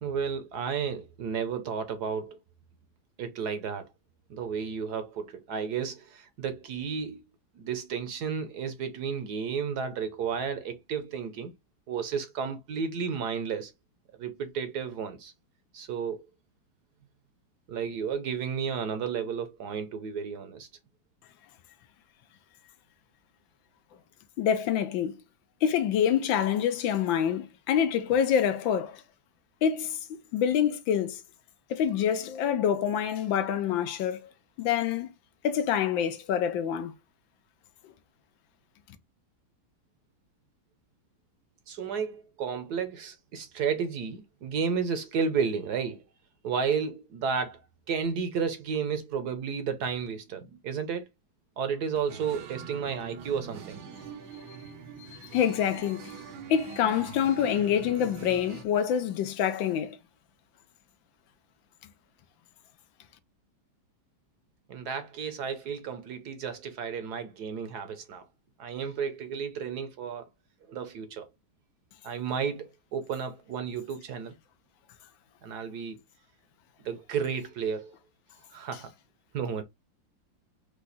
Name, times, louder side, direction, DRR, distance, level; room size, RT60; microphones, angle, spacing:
voice 1, 0.0-2.4 3.2-3.9 4.3-7.2 7.5-11.5 11.9-13.7 14.2-15.3 15.7-16.3 17.7-20.7 41.7-46.0 46.4-47.6 47.9-51.1 51.6-53.8 64.7-68.3 68.6-70.2 70.7-71.3 72.0-74.4 75.4-76.0 76.8-77.9 78.5-78.9 79.3-79.6, right 6 dB, 65° right, 1.2 m, -32 dB
voice 2, 24.4-25.2 25.6-29.0 29.6-30.0 30.3-31.2 31.7-34.3 34.6-35.1 35.4-36.9 55.0-56.2 56.5-60.0, left 9 dB, 80° left, 1.4 m, -26 dB
sound 1, 52.1-58.6, right 6 dB, 85° right, 1.6 m, -44 dB
4.9 x 2.4 x 4.0 m
omnidirectional pair, 2.1 m